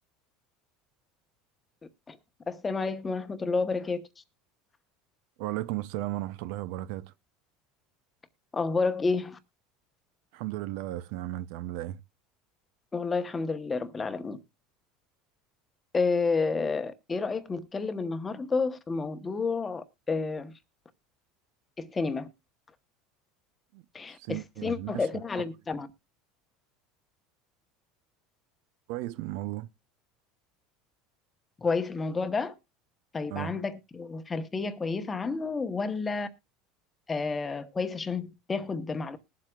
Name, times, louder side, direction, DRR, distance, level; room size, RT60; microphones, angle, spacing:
voice 1, 2.5-4.2 8.5-9.4 12.9-14.4 15.9-20.5 21.8-22.3 23.9-25.9 31.6-32.5 33.1-36.3 37.1-39.2, left 4 dB, 15° left, 0.9 m, -30 dB
voice 2, 5.4-7.1 10.3-12.0 23.7-23.8 24.2-25.0 28.9-29.7 33.3-33.5, right 16 dB, 70° right, 0.5 m, -35 dB
20.5 x 7.6 x 2.4 m
supercardioid pair, 145°, 0 cm